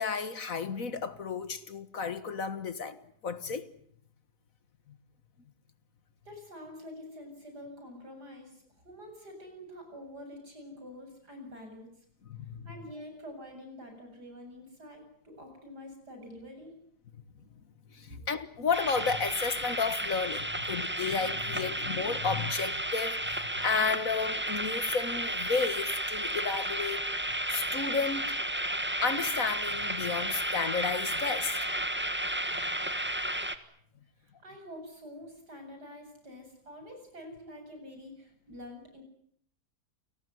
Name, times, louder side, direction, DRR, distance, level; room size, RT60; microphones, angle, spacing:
voice 1, 0.0-3.0 3.2-3.7 4.9-5.0 12.3-12.7 17.9-27.1 27.5-28.4 29.0-31.8, left 5 dB, 55° left, 2.0 m, -32 dB
voice 2, 6.2-11.9 12.6-16.8 34.2-39.0, left 1 dB, 80° right, 8.4 m, -47 dB
sound 1, 18.7-33.6, right 1 dB, 5° right, 1.5 m, -33 dB
29.0 x 19.0 x 9.5 m
omnidirectional pair, 1.7 m